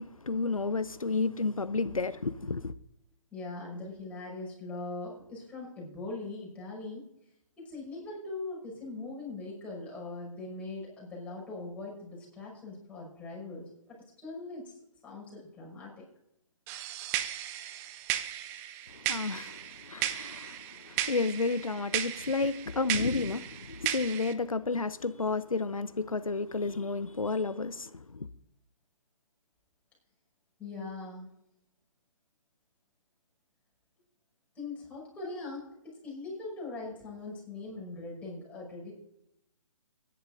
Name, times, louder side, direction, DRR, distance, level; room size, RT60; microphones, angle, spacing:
voice 1, 0.0-2.7 18.9-28.3, left 3 dB, 90° left, 0.6 m, -31 dB
voice 2, 3.3-7.0 7.6-14.8 15.0-16.0 30.6-31.3 34.5-38.9, left 3 dB, 10° left, 5.8 m, -41 dB
sound 1, 16.7-24.3, right 11 dB, 15° right, 0.5 m, -36 dB
22.5 x 11.0 x 2.6 m
figure-of-eight pair, 135°, 17 cm